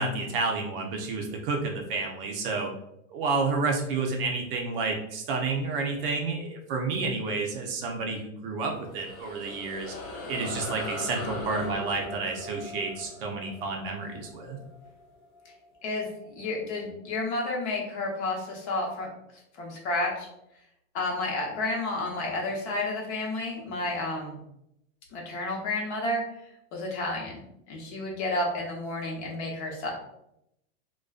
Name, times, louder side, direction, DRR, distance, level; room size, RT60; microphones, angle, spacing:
voice 1, 0.0-2.7 3.1-9.9 10.3-14.6, right 3 dB, 45° right, 1 dB, 0.4 m, -30 dB
sound 1, 8.7-15.5, left 2 dB, 30° left, 0.4 m, -39 dB
voice 2, 16.4-19.1 19.6-20.3 20.9-24.4 25.1-26.2 26.7-27.4 27.7-29.9, left 2 dB, 55° left, -1 dB, 0.9 m, -31 dB
2.4 x 2.2 x 2.3 m, 0.80 s
supercardioid pair, 140°, 40 cm